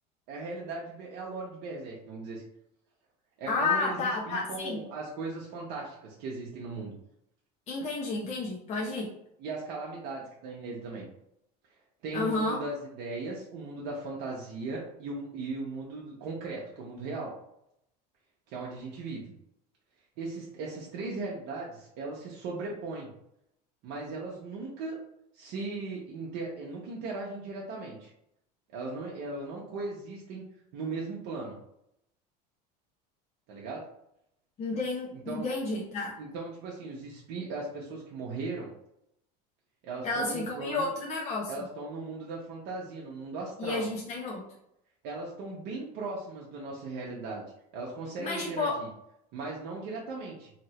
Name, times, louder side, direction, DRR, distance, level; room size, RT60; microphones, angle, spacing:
voice 1, 0.3-2.4 3.4-6.9 9.4-11.1 12.0-17.3 18.5-19.3 20.2-23.1 23.8-25.0 25.3-28.1 28.7-30.4 30.7-31.6 33.5-33.8 35.1-35.5 36.2-38.7 39.8-40.9 41.5-43.9 45.0-47.4 47.7-48.9 49.3-50.5, right 3 dB, 60° right, -3 dB, 0.8 m, -38 dB
voice 2, 3.5-4.8 7.7-9.1 12.1-12.6 34.6-36.1 40.0-41.5 43.6-44.5 48.2-48.8, left 3 dB, 35° left, -4 dB, 0.7 m, -31 dB
2.8 x 2.5 x 3.1 m, 0.77 s
supercardioid pair, 115°, 21 cm